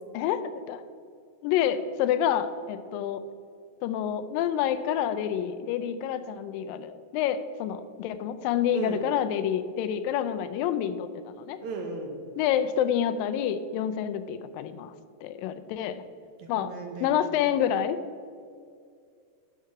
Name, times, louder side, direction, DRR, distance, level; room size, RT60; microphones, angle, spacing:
voice 1, 0.1-0.8 1.4-3.2 3.8-11.6 12.4-14.9 15.2-16.0 16.5-16.7 17.0-18.0, left 9 dB, 85° left, 12 dB, 2.3 m, -28 dB
voice 2, 8.7-9.0 11.6-12.1 16.4-17.4, right 3 dB, 70° right, 3 dB, 2.1 m, -36 dB
11.0 x 6.0 x 4.7 m, 2.2 s
omnidirectional pair, 4.0 m